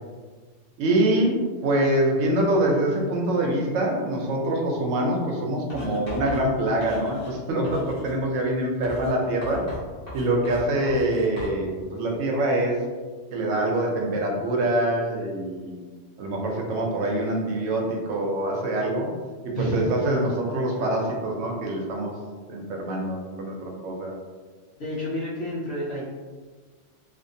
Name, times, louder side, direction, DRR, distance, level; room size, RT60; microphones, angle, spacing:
voice 1, 0.8-9.6 10.1-12.8 13.3-15.8 16.2-19.1 19.4-22.1 22.5-24.1, right 1 dB, 85° right, 0 dB, 0.9 m, -25 dB
Writing, 5.7-7.4 7.6-8.2 8.8-11.6, equal, 35° left, 1.0 m, -39 dB
voice 2, 19.5-19.9 24.8-26.0, equal, 65° left, -7 dB, 0.9 m, -29 dB
2.5 x 2.4 x 2.6 m, 1.5 s
omnidirectional pair, 1.2 m